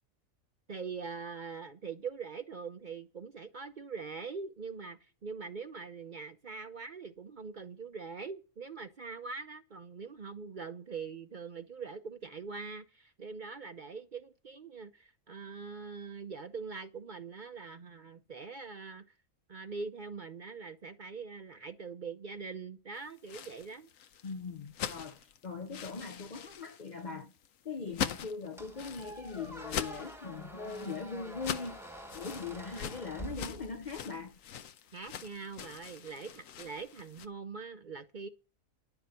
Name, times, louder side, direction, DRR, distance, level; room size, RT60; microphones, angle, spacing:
voice 1, 0.7-19.0 19.5-23.9 34.9-38.3, right 5 dB, 45° right, 0.7 m, -43 dB
sound 1, 23.1-37.3, left 9 dB, 75° left, 1.2 m, -42 dB
voice 2, 24.2-27.3 27.6-31.8 32.1-34.4, left 5 dB, 45° left, 0.6 m, -41 dB
Squeak, 28.6-34.1, right 1 dB, ahead, 1.0 m, -47 dB
10.5 x 7.0 x 8.2 m
omnidirectional pair, 1.4 m